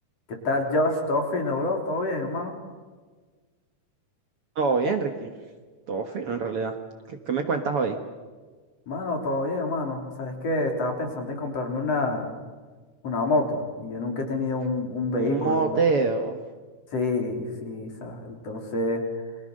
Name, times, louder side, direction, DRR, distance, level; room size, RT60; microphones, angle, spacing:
voice 1, 0.3-2.5 8.9-12.3 13.0-15.6 16.9-19.0, left 2 dB, 50° left, 3 dB, 4.2 m, -27 dB
voice 2, 4.6-5.3 5.9-6.8 7.1-8.0 15.2-16.4, right 4 dB, 50° right, 6 dB, 2.0 m, -25 dB
29.5 x 24.5 x 6.6 m, 1.4 s
omnidirectional pair, 3.8 m